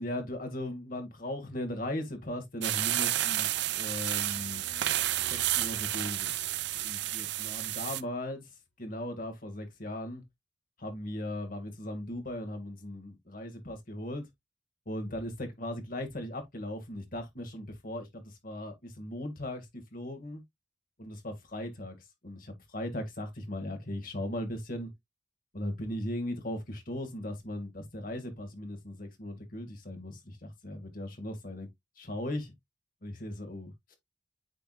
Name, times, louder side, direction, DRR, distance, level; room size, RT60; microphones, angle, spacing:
voice 1, 0.0-4.6 5.2-6.3 6.8-8.5 8.8-10.2 10.8-14.3 14.9-19.7 19.9-20.4 21.0-22.0 22.2-24.9 25.5-31.7 32.0-32.5 33.0-34.0, left 1 dB, 50° left, 1.9 m, -38 dB
sound 1, 2.6-8.0, right 14 dB, 65° right, 0.4 m, -31 dB
sound 2, 3.9-7.7, left 2 dB, 75° left, 3.1 m, -53 dB
8.6 x 4.6 x 2.4 m
head